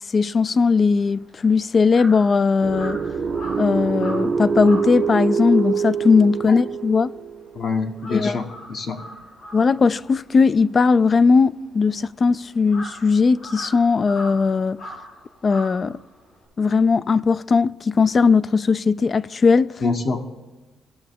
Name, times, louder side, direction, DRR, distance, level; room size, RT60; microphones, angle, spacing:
voice 1, 0.1-3.0 3.6-7.1 8.1-8.4 9.5-14.8 15.4-16.0 16.6-19.7, left 4 dB, 40° left, 0.3 m, -18 dB
Crow, 1.0-7.5 7.8-16.4, equal, 80° left, 3.9 m, -41 dB
sound 1, 2.6-7.7, right 6 dB, 45° right, 0.7 m, -25 dB
voice 2, 7.5-9.0 19.8-20.2, left 4 dB, 55° left, 1.3 m, -26 dB
17.0 x 6.6 x 3.6 m
cardioid pair, 90°, 0 cm